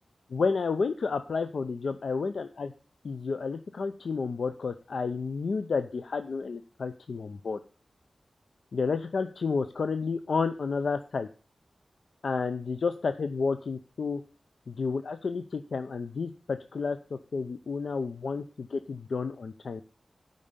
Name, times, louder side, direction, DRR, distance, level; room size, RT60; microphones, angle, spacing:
voice 1, 0.3-2.7 3.0-7.6 8.7-11.3 12.2-14.2 14.7-19.8, left 4 dB, 80° left, 9 dB, 0.5 m, -31 dB
8.8 x 5.3 x 6.8 m, 0.38 s
wide cardioid pair, 105°, 0 cm